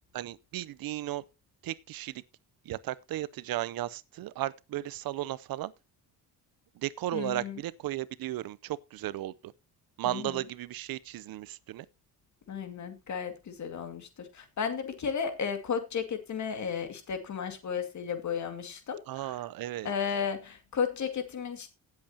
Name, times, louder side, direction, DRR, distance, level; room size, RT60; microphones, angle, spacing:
voice 1, 0.1-1.2 1.6-2.2 2.6-5.7 6.7-9.5 10.0-11.9 19.1-19.9, right 14 dB, 65° right, 0.7 m, -35 dB
voice 2, 7.1-7.6 10.0-10.4 12.5-19.3 19.8-21.7, left 6 dB, 45° left, 2.3 m, -34 dB
17.5 x 7.8 x 2.8 m
cardioid pair, 115°, 38 cm